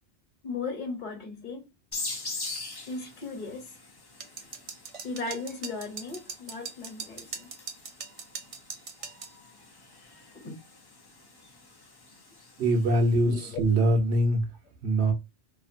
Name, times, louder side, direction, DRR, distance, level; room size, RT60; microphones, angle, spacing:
voice 1, 0.4-1.7 2.9-3.7 5.0-7.5 10.4-10.6 13.2-13.6, left 4 dB, 45° left, 1.1 m, -36 dB
sound 1, 1.9-13.3, left 3 dB, 30° left, 0.5 m, -43 dB
sound 2, 4.2-9.3, right 5 dB, 50° right, 0.4 m, -40 dB
voice 2, 12.6-14.4 14.8-15.1, right 1 dB, 70° right, 1.2 m, -23 dB
2.9 x 2.5 x 2.4 m
omnidirectional pair, 1.1 m